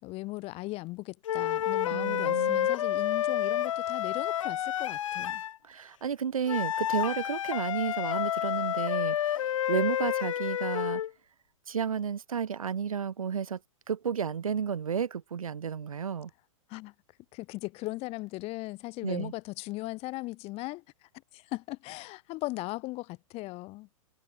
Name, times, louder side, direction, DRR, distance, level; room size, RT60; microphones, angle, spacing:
voice 1, 0.0-5.4 16.7-16.9 17.3-23.9, left 21 dB, 35° left, 3.5 m, -38 dB
sound 1, 1.3-5.6 6.5-11.1, left 11 dB, 70° left, 2.4 m, -29 dB
voice 2, 1.9-2.7 5.6-11.0 11.7-13.6 13.9-16.3 19.0-19.3, right 7 dB, 85° right, 1.5 m, -32 dB
hypercardioid pair, 125°, 17 cm